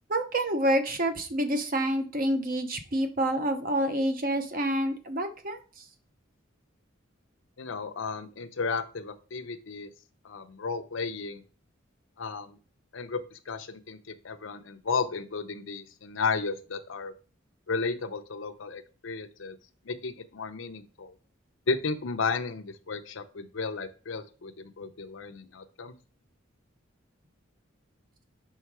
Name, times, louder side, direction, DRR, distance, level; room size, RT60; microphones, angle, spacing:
voice 1, 0.1-5.6, right 1 dB, 45° right, 7 dB, 0.8 m, -28 dB
voice 2, 7.6-9.9 10.2-11.4 12.2-12.6 12.9-17.1 17.7-19.6 19.8-21.2 21.7-25.9, left 4 dB, 75° left, 8 dB, 0.7 m, -33 dB
5.6 x 3.9 x 4.7 m, 0.36 s
head